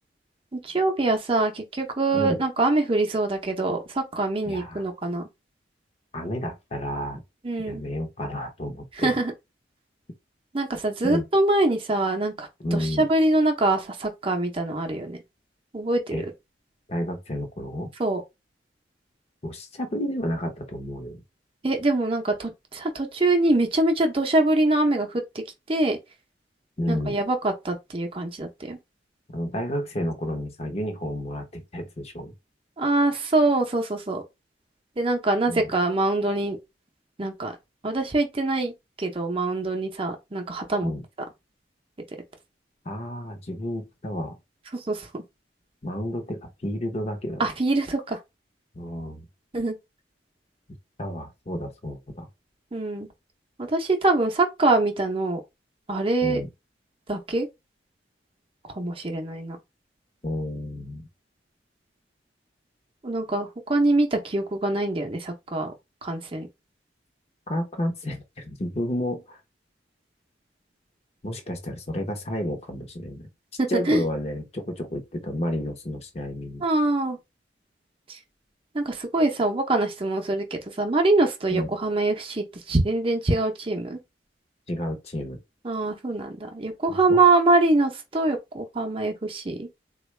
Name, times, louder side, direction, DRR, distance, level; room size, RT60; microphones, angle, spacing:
voice 1, 0.5-5.2 7.4-7.8 9.0-9.3 10.5-15.2 15.7-16.3 18.0-18.2 21.6-26.0 26.9-28.8 32.8-34.2 35.0-36.6 37.2-37.5 37.8-40.9 44.9-45.2 47.4-48.2 49.5-49.8 52.7-53.1 53.6-55.4 55.9-56.4 57.1-57.5 58.7-59.6 63.0-65.7 66.0-66.5 73.6-74.0 76.6-77.2 78.1-78.2 78.7-84.0 85.6-89.7, right 2 dB, 30° right, 0.6 m, -24 dB
voice 2, 4.5-4.9 6.1-7.2 7.6-9.1 11.0-11.2 12.6-13.1 16.1-16.2 16.9-17.9 19.4-21.2 26.8-27.2 29.3-32.3 35.5-35.7 40.8-41.0 42.8-44.4 45.8-47.4 48.7-49.3 51.0-52.3 56.2-56.5 60.2-61.1 67.5-69.4 71.2-73.3 73.7-76.6 81.5-81.7 84.7-85.4 86.9-87.2, equal, 35° left, 0.8 m, -31 dB
3.8 x 2.3 x 3.2 m
head